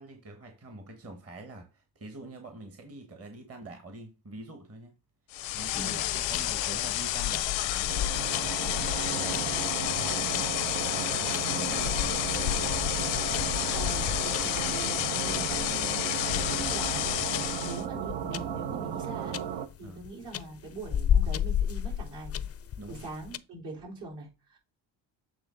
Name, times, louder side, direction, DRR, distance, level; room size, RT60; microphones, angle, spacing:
voice 1, 0.0-5.0 5.5-8.0 9.1-9.5 10.0-12.5 19.8-20.1 22.8-23.0, right 2 dB, 35° right, 1.2 m, -45 dB
sound 1, 5.3-17.8, left 14 dB, 85° left, 0.6 m, -30 dB
sound 2, 5.8-23.4, left 9 dB, 35° left, 0.4 m, -34 dB
sound 3, 7.9-19.7, right 9 dB, 85° right, 0.8 m, -35 dB
voice 2, 13.7-16.1 16.3-17.2 17.6-22.4 22.9-24.6, right 2 dB, 70° right, 3.6 m, -42 dB
7.9 x 3.5 x 3.8 m
cardioid pair, 90°, 43 cm